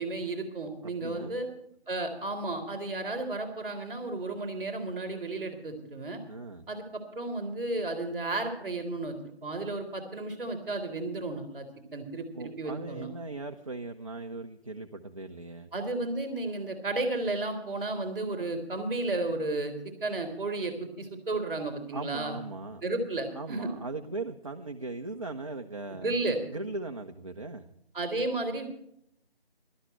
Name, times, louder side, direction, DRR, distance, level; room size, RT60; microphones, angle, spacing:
voice 1, 0.0-1.5 1.9-6.2 6.7-6.8 7.1-11.7 11.9-13.1 15.7-22.4 22.8-23.7 26.0-26.4 27.9-28.7, right 2 dB, 5° right, -10 dB, 2.6 m, -33 dB
voice 2, 0.8-1.3 6.3-6.7 12.3-15.7 21.9-22.8 23.3-26.1 26.5-27.6, right 3 dB, 35° right, 4 dB, 0.7 m, -39 dB
17.0 x 12.5 x 4.4 m, 0.73 s
figure-of-eight pair, 160°, 32 cm